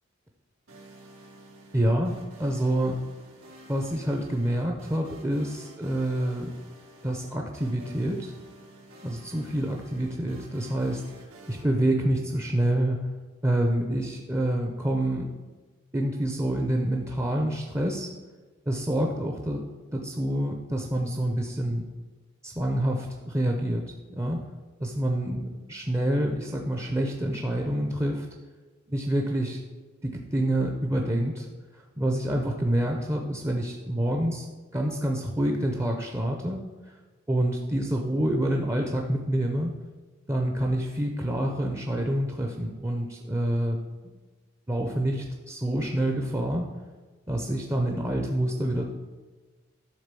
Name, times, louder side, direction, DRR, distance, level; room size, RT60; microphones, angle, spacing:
sound 1, 0.7-11.6, right 2 dB, 85° right, 2.4 m, -51 dB
voice 1, 1.7-3.0 3.7-6.5 7.0-8.3 9.0-11.0 11.4-13.1 13.4-15.3 15.9-18.1 18.7-19.6 19.9-21.9 22.4-24.4 24.8-28.3 28.9-29.6 30.0-31.5 31.7-34.5 34.7-36.9 37.3-39.7 40.3-43.8 44.0-44.1 44.7-46.7 47.3-48.8, right 1 dB, 15° right, 2 dB, 0.6 m, -27 dB
11.5 x 3.9 x 6.7 m, 1.3 s
head